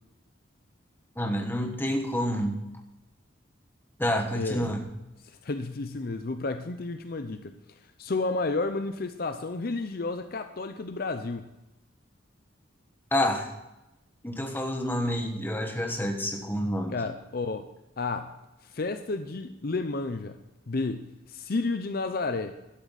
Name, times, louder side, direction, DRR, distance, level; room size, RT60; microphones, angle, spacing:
voice 1, 1.1-2.6 4.0-4.8 13.1-13.5 14.2-17.0, left 1 dB, 10° left, 3 dB, 1.3 m, -28 dB
voice 2, 4.3-4.8 5.2-7.5 8.0-11.5 16.9-17.7 18.0-18.3 18.6-20.4 20.7-22.5, left 3 dB, 50° left, 9 dB, 0.6 m, -31 dB
12.0 x 11.5 x 4.1 m, 0.96 s
head